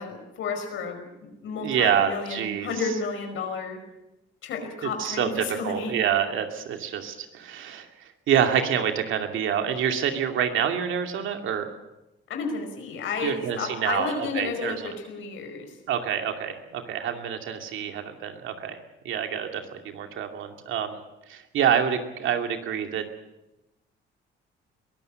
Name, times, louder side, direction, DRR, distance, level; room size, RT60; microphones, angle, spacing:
voice 1, 0.0-3.8 4.4-5.9 12.3-15.7, left 4 dB, 80° left, 5 dB, 5.2 m, -32 dB
voice 2, 1.6-2.7 4.8-7.9 8.3-11.7 13.2-14.9 15.9-18.8 19.0-21.0 21.3-23.0, right 8 dB, 80° right, 5 dB, 2.5 m, -27 dB
22.5 x 15.0 x 8.0 m, 0.95 s
cardioid pair, 90°, 20 cm